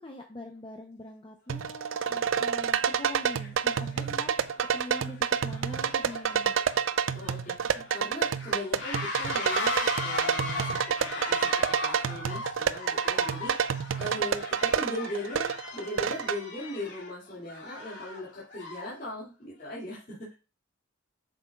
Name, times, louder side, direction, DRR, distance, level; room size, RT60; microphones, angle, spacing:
voice 1, 0.0-4.3 4.7-6.6 7.6-7.9, left 2 dB, 25° left, 3 dB, 0.7 m, -43 dB
sound 1, 1.5-16.4, right 7 dB, 85° right, 0.4 m, -28 dB
sound 2, 1.6-1.7 2.5-2.7 3.0-19.0, left 2 dB, 60° left, 2.6 m, -38 dB
voice 2, 7.1-20.3, left 1 dB, 45° left, -9 dB, 2.4 m, -39 dB
7.8 x 6.0 x 2.4 m, 0.33 s
head